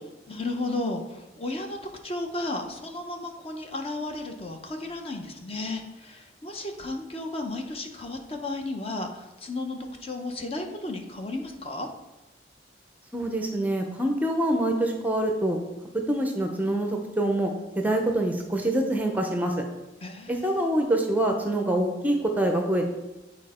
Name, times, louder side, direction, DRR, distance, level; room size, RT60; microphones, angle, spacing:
voice 1, 0.3-11.9 20.0-20.7, left 2 dB, 30° left, 3 dB, 0.7 m, -34 dB
voice 2, 13.1-15.6 15.9-17.5 17.8-19.5 20.3-22.9, right 1 dB, 10° right, 3 dB, 0.5 m, -25 dB
8.8 x 4.2 x 4.2 m, 1.0 s
head